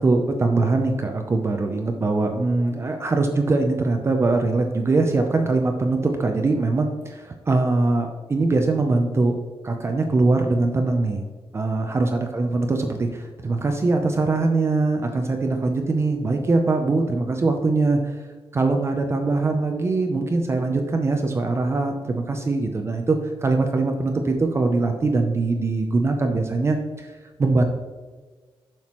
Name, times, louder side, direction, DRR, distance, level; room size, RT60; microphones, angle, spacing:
voice 1, 0.0-9.4 9.6-11.2 11.5-18.2 18.5-27.6, right 3 dB, 30° right, 4 dB, 0.5 m, -22 dB
7.3 x 5.8 x 3.0 m, 1.4 s
wide cardioid pair, 165°, 9 cm